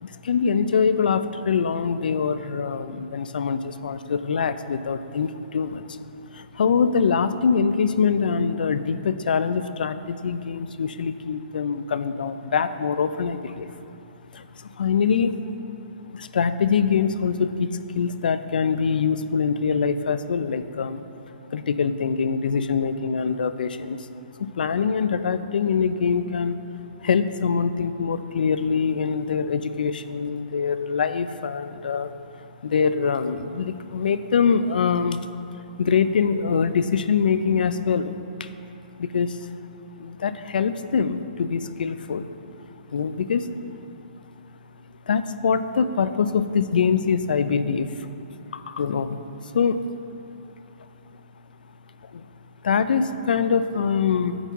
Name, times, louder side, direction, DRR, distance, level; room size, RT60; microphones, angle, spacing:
voice 1, 0.0-6.0 6.3-13.7 14.3-15.4 16.1-21.0 21.5-24.1 24.4-26.6 27.0-32.1 32.4-35.2 35.8-38.1 38.4-38.5 39.0-39.5 40.0-42.3 42.9-43.5 45.1-48.1 48.5-49.2 49.5-49.8 52.0-52.3 52.6-54.4, left 6 dB, 75° left, 12 dB, 0.4 m, -24 dB
8.6 x 5.3 x 3.6 m, 2.7 s
hypercardioid pair, 165°, 5 cm